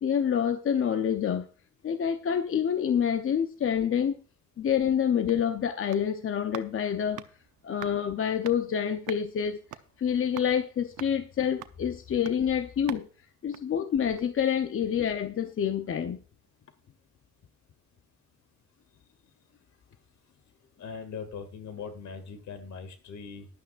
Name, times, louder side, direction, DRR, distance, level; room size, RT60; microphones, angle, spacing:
voice 1, 0.0-1.5 1.8-4.2 4.6-7.2 7.6-9.6 10.0-13.0 13.4-16.2, left 8 dB, 45° left, 0.7 m, -27 dB
sound 1, 5.2-14.5 14.8-14.9, right 13 dB, 80° right, 0.8 m, -48 dB
voice 2, 20.8-23.5, left 5 dB, 65° left, 2.3 m, -40 dB
15.0 x 11.5 x 2.5 m
cardioid pair, 90°, 30 cm